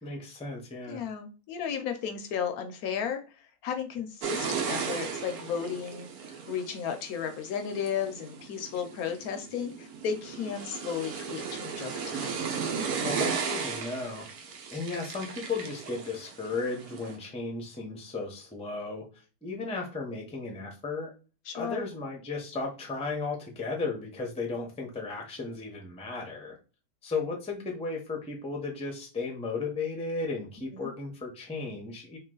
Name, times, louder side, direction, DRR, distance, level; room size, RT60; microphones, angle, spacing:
voice 1, 0.0-1.0 13.0-14.3 14.7-19.1 19.4-21.1 21.5-26.6 27.0-32.2, left 3 dB, 5° left, 0 dB, 0.5 m, -35 dB
voice 2, 0.9-3.2 3.6-6.1 6.5-12.4 21.5-21.9 30.7-30.9, left 7 dB, 75° left, 6 dB, 1.0 m, -34 dB
sound 1, 4.2-17.2, right 6 dB, 75° right, 1.2 m, -36 dB
3.1 x 2.9 x 3.8 m, 0.35 s
omnidirectional pair, 1.7 m